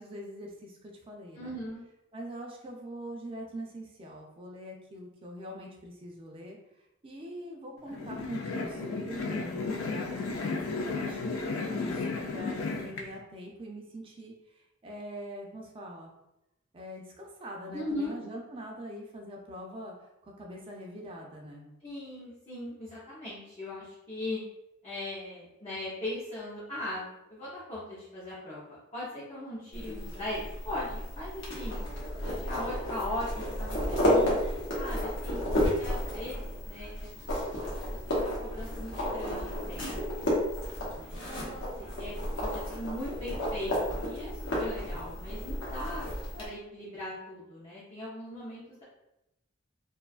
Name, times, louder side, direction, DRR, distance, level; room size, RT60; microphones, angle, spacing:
voice 1, 0.0-1.6 2.1-6.6 7.0-11.4 11.7-16.1 16.7-19.9 20.2-21.7, equal, 25° right, -1 dB, 0.4 m, -43 dB
voice 2, 1.3-1.8 17.7-18.1 21.8-24.4 24.8-31.8 32.2-34.3 34.8-37.1 37.6-37.7 38.1-40.1 40.9-41.6 42.0-42.1 42.4-46.1 46.4-48.8, left 1 dB, 30° left, -9 dB, 0.6 m, -39 dB
sound 1, 7.9-13.0, left 4 dB, 90° left, 0.4 m, -33 dB
sound 2, 29.7-46.5, equal, 65° left, 0.8 m, -32 dB
2.5 x 2.2 x 2.3 m, 0.88 s
head